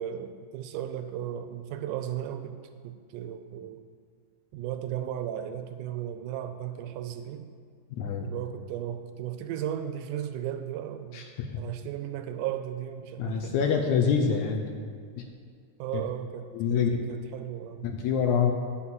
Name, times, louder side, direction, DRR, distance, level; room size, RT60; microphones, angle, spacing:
voice 1, 0.0-2.6 2.8-3.9 4.5-7.5 8.2-11.3 11.6-13.6 14.2-14.5 15.8-17.9, right 10 dB, 80° right, 8 dB, 2.0 m, -35 dB
voice 2, 8.0-8.4 11.1-11.6 13.2-14.9 15.2-15.3 15.9-16.0 16.5-16.9 17.8-18.5, left 6 dB, 75° left, 3 dB, 1.9 m, -26 dB
11.0 x 4.3 x 7.3 m, 2.1 s
omnidirectional pair, 3.8 m